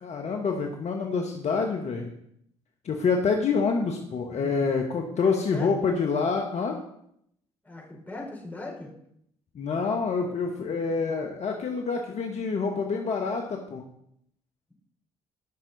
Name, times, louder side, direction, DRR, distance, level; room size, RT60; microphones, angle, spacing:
voice 1, 0.0-2.1 2.8-6.8 9.5-13.8, left 5 dB, 50° left, 2 dB, 1.4 m, -27 dB
voice 2, 7.6-8.9, left 2 dB, 10° left, -2 dB, 4.6 m, -39 dB
15.5 x 6.2 x 4.1 m, 0.72 s
hypercardioid pair, 50°, 15 cm